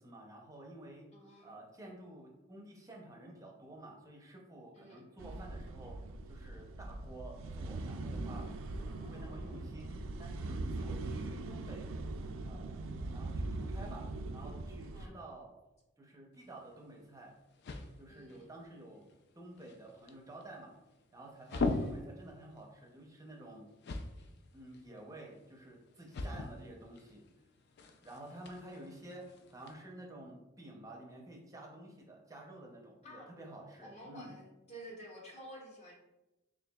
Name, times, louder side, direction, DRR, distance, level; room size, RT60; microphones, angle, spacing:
voice 1, 0.0-1.1 1.4-5.9 6.3-8.5 8.7-11.9 12.5-12.7 13.1-14.0 14.3-15.5 16.0-17.3 18.0-19.1 19.4-20.7 21.1-23.7 24.5-27.2 28.0-34.3, right 1 dB, 15° right, 0 dB, 0.5 m, -51 dB
voice 2, 1.1-1.6 4.7-5.0 8.7-9.5 10.8-11.2 14.9-15.1 18.1-18.5 21.5-22.0 33.0-33.3 33.8-36.0, equal, 30° left, -3 dB, 0.8 m, -52 dB
sound 1, 5.2-15.1, right 2 dB, 70° right, 0.3 m, -41 dB
sound 2, 16.3-29.7, left 3 dB, 50° left, 0.4 m, -43 dB
6.6 x 2.5 x 2.3 m, 1.0 s
head